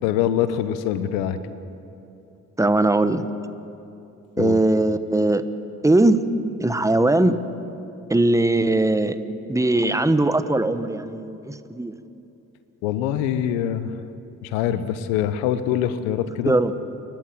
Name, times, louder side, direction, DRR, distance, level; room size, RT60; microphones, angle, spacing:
voice 1, 0.0-1.4 4.4-4.6 12.8-13.9 14.4-16.5, left 10 dB, 80° left, 13 dB, 1.1 m, -24 dB
voice 2, 2.6-3.3 4.4-5.5 5.8-6.2 6.6-7.4 8.1-9.1 9.5-11.9 16.5-16.7, right 2 dB, 10° right, 11 dB, 1.2 m, -20 dB
29.0 x 12.0 x 7.6 m, 2.8 s
hypercardioid pair, 50°, 37 cm